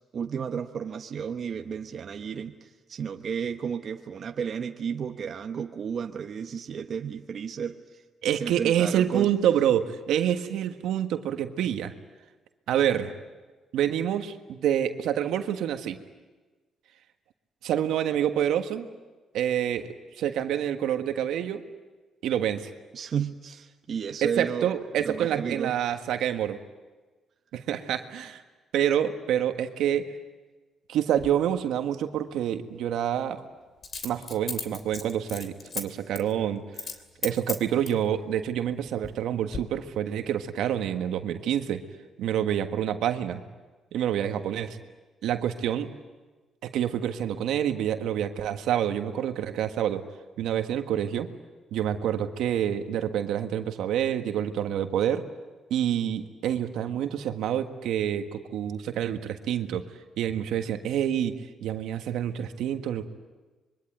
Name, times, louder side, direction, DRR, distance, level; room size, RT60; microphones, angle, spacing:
voice 1, 0.1-8.0 8.3-9.3 22.9-24.7 25.0-25.7, right 7 dB, 55° right, 6 dB, 1.1 m, -33 dB
voice 2, 8.2-11.9 12.7-13.1 13.7-16.0 17.6-18.9 19.3-21.6 22.2-22.7 24.2-26.6 27.5-28.4 28.7-30.1 30.9-33.4 34.0-36.6 37.2-41.8 42.2-43.4 43.9-44.8 45.2-45.9 46.6-50.0 50.4-51.3 51.7-55.2 55.7-59.9 60.2-61.3 61.6-63.0, right 10 dB, 85° right, 7 dB, 1.6 m, -27 dB
Coin (dropping), 31.2-31.3 33.8-35.8 36.1-36.3 36.7-37.0 37.2-38.0 38.7-39.2 39.5-39.6, left 5 dB, 50° left, 2.9 m, -35 dB
25.5 x 23.0 x 9.3 m, 1.3 s
cardioid pair, 90°, 0 cm